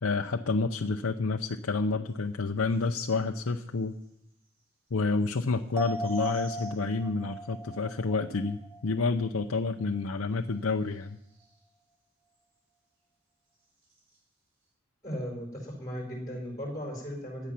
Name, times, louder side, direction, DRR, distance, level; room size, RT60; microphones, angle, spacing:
voice 1, 0.0-4.0 4.9-11.2, left 3 dB, 70° left, 4 dB, 0.6 m, -29 dB
sound 1, 2.0-2.3 2.6-7.9 8.9-9.0 9.9-10.0 10.3-12.9 13.3-14.7, right 2 dB, 60° right, 6.5 m, -61 dB
sound 2, 5.8-9.5 9.8-9.9, right 2 dB, 15° right, 1.1 m, -39 dB
voice 2, 15.0-17.5, equal, 15° left, -1 dB, 5.1 m, -37 dB
17.0 x 10.5 x 5.9 m, 0.80 s
head